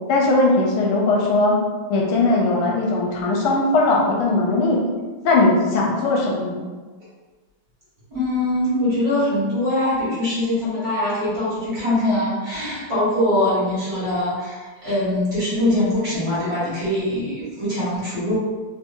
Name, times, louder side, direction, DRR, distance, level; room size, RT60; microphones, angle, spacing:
voice 1, 0.1-1.6 1.9-4.8 5.2-6.6, left 2 dB, 75° left, -3 dB, 1.5 m, -19 dB
voice 2, 8.1-18.3, left 1 dB, 45° right, -10 dB, 1.8 m, -22 dB
3.7 x 2.8 x 2.6 m, 1.4 s
omnidirectional pair, 2.4 m